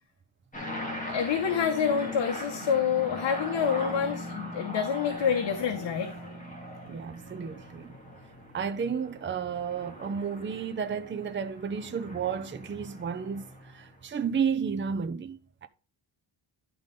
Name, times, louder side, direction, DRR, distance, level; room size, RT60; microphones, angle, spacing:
sound 1, 0.5-14.2, left 1 dB, 15° left, 2.2 m, -40 dB
voice 1, 1.0-6.4, left 7 dB, 65° left, 1.3 m, -27 dB
voice 2, 6.9-8.0 8.5-15.7, right 6 dB, 25° right, 0.6 m, -32 dB
11.5 x 4.0 x 5.2 m
wide cardioid pair, 155°, 46 cm